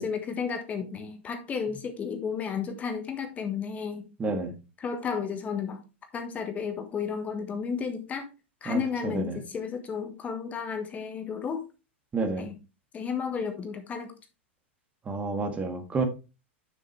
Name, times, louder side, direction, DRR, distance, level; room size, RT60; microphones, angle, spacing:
voice 1, 0.0-4.1 4.8-5.8 6.1-8.3 8.6-11.6 12.4-12.6 12.9-14.1, left 6 dB, 20° left, 1.4 m, -32 dB
voice 2, 4.2-4.5 8.7-9.4 12.1-12.5 15.0-16.0, right 3 dB, 20° right, 1.8 m, -30 dB
9.8 x 6.4 x 3.3 m
figure-of-eight pair, 95°, 6 cm